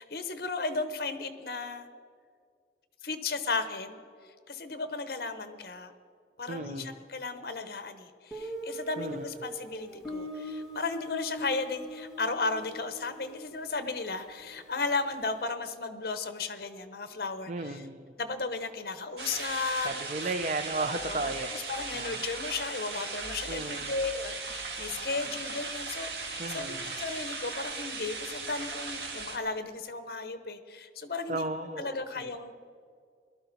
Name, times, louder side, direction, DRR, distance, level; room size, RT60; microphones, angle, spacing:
voice 1, 0.0-1.9 3.0-4.0 4.5-5.9 6.4-17.8 18.2-19.9 20.9-31.4 31.8-32.6, left 3 dB, 60° left, 10 dB, 1.0 m, -35 dB
voice 2, 6.5-7.0 9.0-9.2 17.5-18.1 19.8-21.6 21.9-22.2 22.9-23.1 23.5-24.0 26.4-26.9 31.3-32.3, right 2 dB, 40° right, 8 dB, 0.5 m, -35 dB
Guitar, 8.3-15.0, equal, 5° right, 1.7 m, -42 dB
sound 1, 19.2-29.4, right 3 dB, 70° right, 1.6 m, -38 dB
18.5 x 12.5 x 4.1 m, 2.1 s
head